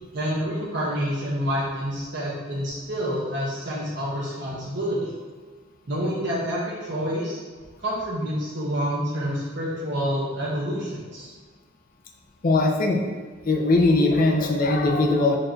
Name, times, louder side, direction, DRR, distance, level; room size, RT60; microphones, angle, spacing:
voice 1, 0.1-5.1 5.9-7.4 7.8-11.3, equal, 65° right, -6 dB, 0.8 m, -28 dB
voice 2, 12.4-13.0 13.4-15.4, left 2 dB, 45° left, 2 dB, 0.5 m, -20 dB
4.4 x 2.6 x 4.4 m, 1.5 s
head